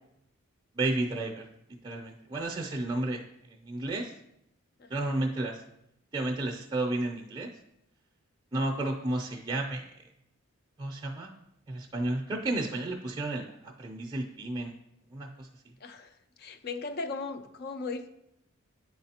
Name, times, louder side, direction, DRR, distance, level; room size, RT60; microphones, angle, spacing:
voice 1, 0.8-1.4 1.8-3.2 3.6-4.1 4.9-5.6 6.1-7.5 8.5-9.8 10.8-11.3 11.7-14.7 15.1-15.5, right 2 dB, 20° right, -2 dB, 0.5 m, -32 dB
voice 2, 4.8-5.1 15.8-16.1 16.4-18.1, left 3 dB, 45° left, 9 dB, 0.4 m, -37 dB
9.8 x 4.0 x 2.9 m, 0.81 s
head